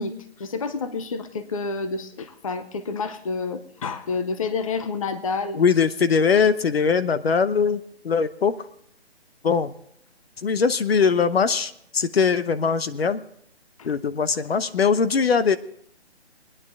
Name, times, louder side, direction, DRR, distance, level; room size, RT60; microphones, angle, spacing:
voice 1, 0.0-5.6 13.8-13.9, left 4 dB, 30° left, 10 dB, 0.7 m, -29 dB
voice 2, 5.6-8.7 9.4-9.7 10.4-13.2 13.8-15.6, left 5 dB, 60° left, 13 dB, 0.9 m, -21 dB
22.0 x 10.0 x 3.5 m, 0.69 s
hypercardioid pair, 165°, 34 cm